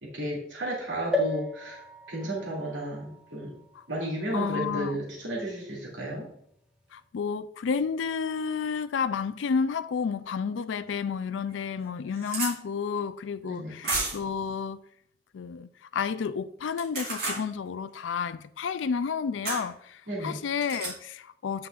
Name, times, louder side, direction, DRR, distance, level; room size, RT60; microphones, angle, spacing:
voice 1, 0.0-1.8 2.1-3.5 3.9-6.3 13.4-13.8 20.1-20.4, right 1 dB, 85° right, 2.5 m, -33 dB
sound 1, 1.1-4.8 5.4-5.5 5.7-5.8, left 1 dB, 5° right, 1.1 m, -34 dB
voice 2, 4.3-5.0 6.9-14.8 15.3-21.7, left 6 dB, 85° left, 0.4 m, -31 dB
sound 2, 10.9-11.0 11.5-11.6 11.8-12.5 13.8-14.3 16.7-17.4 19.4-19.6 20.6-20.9, right 3 dB, 60° right, 3.1 m, -31 dB
9.5 x 5.7 x 2.5 m
head